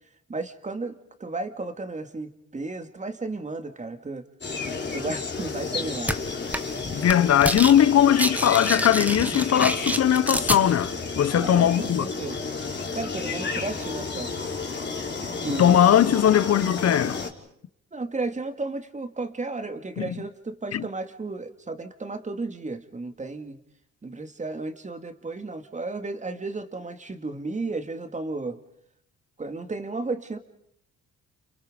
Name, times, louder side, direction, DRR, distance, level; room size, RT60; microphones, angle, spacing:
voice 1, 0.3-4.3 4.9-6.1 11.3-12.4 12.9-14.3 15.2-15.8 17.9-23.6 24.0-28.6 29.4-30.4, right 3 dB, 25° right, 2.3 m, -33 dB
sound 1, 4.4-17.3, left 4 dB, 35° left, 3.9 m, -32 dB
sound 2, 6.1-6.2 6.5-6.8 7.1-7.7 8.0-10.6, right 1 dB, 5° right, 1.4 m, -27 dB
voice 2, 6.9-12.1 15.6-17.2 20.0-20.1 20.7-20.8, left 10 dB, 55° left, 0.9 m, -20 dB
30.0 x 29.0 x 5.2 m
cardioid pair, 90°, 30 cm